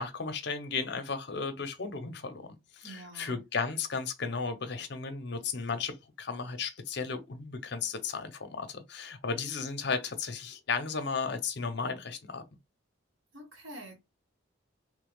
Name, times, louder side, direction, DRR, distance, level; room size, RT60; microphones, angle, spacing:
voice 1, 0.0-2.5 2.7-12.4, left 5 dB, 60° left, 0.7 m, -34 dB
voice 2, 2.8-3.4 13.3-14.0, right 1 dB, 85° right, 1.5 m, -46 dB
3.1 x 2.3 x 3.5 m
head